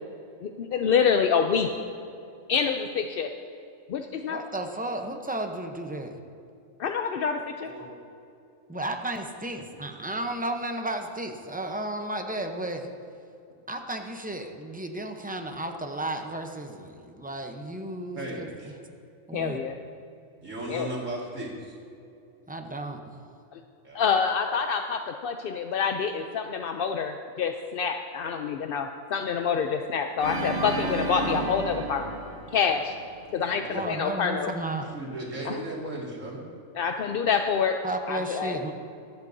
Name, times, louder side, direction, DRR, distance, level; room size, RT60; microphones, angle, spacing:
voice 1, 0.4-1.7 2.5-3.3 3.9-4.4 6.8-7.7 19.3-19.8 20.7-20.9 23.5-23.6 23.9-32.0 32.5-32.9 33.3-34.5 35.5-35.6 36.7-37.7 38.1-38.6, left 6 dB, 65° left, 5 dB, 0.5 m, -27 dB
voice 2, 4.3-6.2 8.7-12.9 13.7-18.7 19.3-19.6 22.5-23.2 33.7-34.9 37.8-38.7, right 1 dB, 10° right, 4 dB, 0.4 m, -33 dB
voice 3, 18.1-18.7 20.4-21.7 23.8-24.2 33.4-33.8 34.9-36.4, right 1 dB, 65° right, -4 dB, 2.6 m, -36 dB
Organ, 30.2-33.3, right 2 dB, 50° right, 1.1 m, -32 dB
24.0 x 8.1 x 2.7 m, 2.6 s
omnidirectional pair, 1.4 m